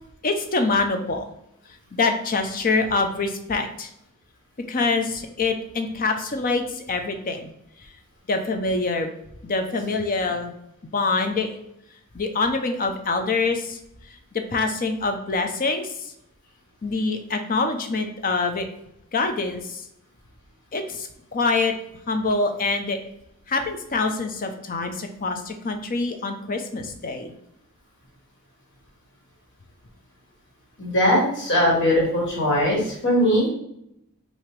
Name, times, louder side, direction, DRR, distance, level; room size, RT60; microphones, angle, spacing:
voice 1, 0.2-1.3 1.9-3.9 4.7-7.5 8.3-9.2 9.4-10.5 10.9-11.5 12.1-13.8 14.3-16.1 16.8-18.7 19.1-19.9 20.7-21.7 22.1-23.0 23.5-27.3, left 3 dB, 40° left, 5 dB, 0.6 m, -25 dB
voice 2, 30.8-33.5, equal, 55° left, -3 dB, 1.8 m, -20 dB
5.8 x 2.8 x 3.3 m, 0.78 s
head